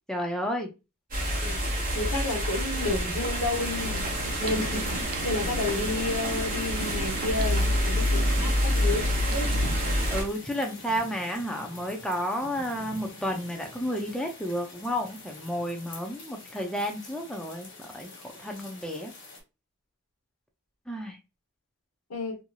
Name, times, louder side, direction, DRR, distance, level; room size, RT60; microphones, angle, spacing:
voice 1, 0.1-0.7 10.1-18.1 18.4-19.1 20.9-21.2, equal, 5° left, 0.4 m, -31 dB
sound 1, 1.1-10.2, equal, 40° right, 1.1 m, -27 dB
voice 2, 1.9-4.0 4.4-9.5 22.1-22.4, left 2 dB, 90° left, 1.0 m, -31 dB
sound 2, 3.4-10.3, equal, 70° right, 0.4 m, -37 dB
sound 3, 3.6-19.4, left 2 dB, 55° left, 1.0 m, -43 dB
3.0 x 2.6 x 2.3 m
head